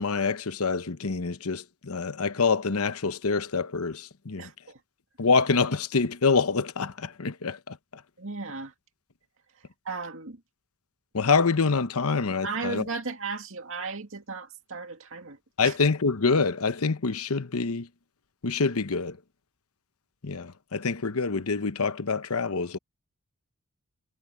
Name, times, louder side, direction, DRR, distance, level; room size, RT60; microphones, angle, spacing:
voice 1, 0.0-4.5 5.2-8.0 11.1-12.9 15.6-17.9 18.4-19.2 20.2-22.8, left 4 dB, 75° left, 1.0 m, -26 dB
voice 2, 4.4-4.8 8.2-8.7 9.8-10.4 12.4-15.4 15.6-15.7, right 4 dB, 65° right, 2.4 m, -35 dB
head